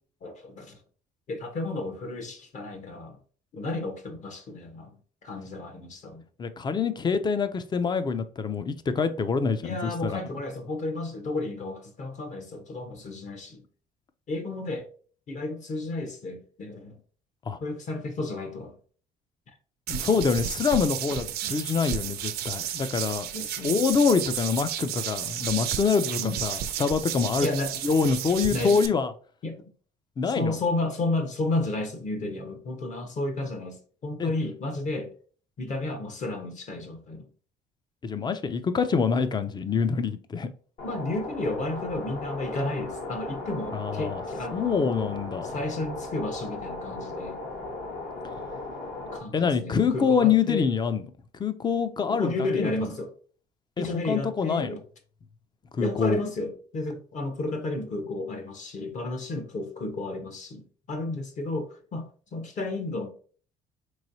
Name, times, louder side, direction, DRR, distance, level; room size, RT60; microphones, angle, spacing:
voice 1, 0.2-0.8 1.3-3.2 3.5-6.2 9.6-13.6 14.3-14.9 15.3-17.0 17.6-18.8 23.3-23.8 26.2-26.4 27.4-27.7 28.5-28.8 29.4-29.6 30.3-35.1 35.6-37.3 40.8-45.1 45.4-47.4 48.3-48.4 49.1-50.7 52.1-53.1 53.8-54.8 55.8-63.1, left 2 dB, 45° left, 0.9 m, -32 dB
voice 2, 6.4-10.2 17.5-17.6 19.9-23.3 23.6-27.5 27.8-29.1 30.2-30.6 34.2-34.3 38.0-40.5 43.7-44.2 44.5-45.5 49.3-51.0 51.4-52.7 53.8-54.7 55.8-56.2, left 5 dB, 25° left, 0.4 m, -25 dB
sound 1, 19.9-28.9, right 11 dB, 70° right, 0.5 m, -32 dB
sound 2, 40.8-49.2, left 2 dB, 65° left, 1.2 m, -37 dB
3.8 x 3.1 x 2.7 m
cardioid pair, 110°, 17 cm